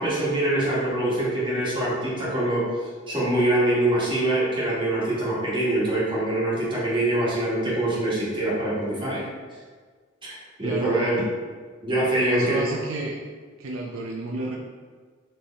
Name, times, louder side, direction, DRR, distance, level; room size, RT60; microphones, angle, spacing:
voice 1, 0.0-9.2 10.2-10.3 10.6-11.2 11.8-12.7, right 1 dB, 25° right, -7 dB, 1.4 m, -24 dB
voice 2, 10.6-11.0 12.1-13.2 13.6-14.6, right 2 dB, 70° right, 0 dB, 0.5 m, -30 dB
4.2 x 3.3 x 3.5 m, 1.6 s
head